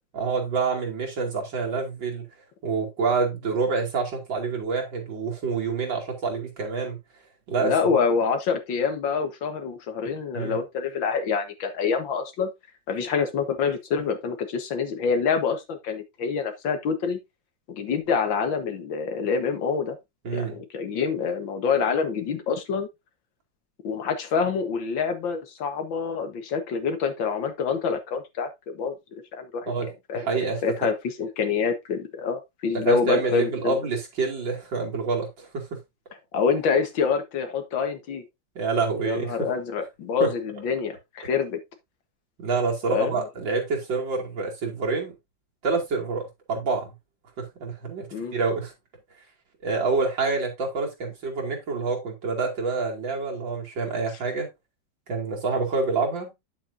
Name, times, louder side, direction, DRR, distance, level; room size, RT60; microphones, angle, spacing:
voice 1, 0.1-2.3 2.6-7.0 7.5-7.8 10.3-10.6 20.2-20.6 29.7-30.9 32.8-35.8 38.5-39.5 40.2-40.3 42.4-45.1 45.6-46.9 47.4-48.7 49.6-54.5 55.1-56.3, right 4 dB, 80° right, 3.2 m, -27 dB
voice 2, 7.6-12.5 12.9-17.2 17.7-20.0 20.3-22.9 23.8-30.3 30.6-33.8 36.3-38.2 39.0-41.6 42.9-43.2 48.1-48.4, left 5 dB, 85° left, 2.1 m, -26 dB
9.1 x 7.6 x 2.6 m
omnidirectional pair, 2.0 m